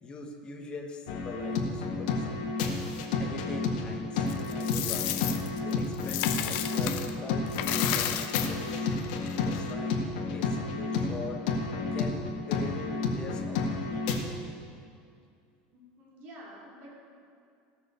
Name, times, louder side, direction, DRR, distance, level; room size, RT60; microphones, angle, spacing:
voice 1, 0.0-2.4 3.2-5.3 5.6-9.0 9.4-11.4 11.9-14.1, left 3 dB, 20° left, 2 dB, 1.3 m, -42 dB
sound 1, 1.1-14.2, left 4 dB, 75° left, 1.8 m, -31 dB
Coin (dropping), 4.3-7.1 7.5-9.7, left 11 dB, 55° left, 0.8 m, -33 dB
voice 2, 15.7-16.9, equal, 40° right, -4 dB, 3.5 m, -49 dB
17.0 x 6.5 x 6.9 m, 2.4 s
supercardioid pair, 155°, 4 cm